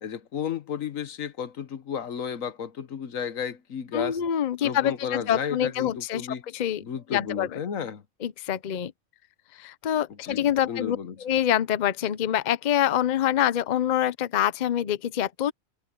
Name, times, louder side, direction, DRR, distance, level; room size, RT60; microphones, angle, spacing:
voice 1, 0.0-4.2 4.6-6.4 6.8-8.0 10.2-11.2, left 7 dB, 85° left, 1.5 m, -33 dB
voice 2, 3.9-6.2 6.5-6.8 7.1-7.5 8.2-8.9 9.6-15.5, left 10 dB, 45° left, 0.6 m, -25 dB
omnidirectional pair, 1.3 m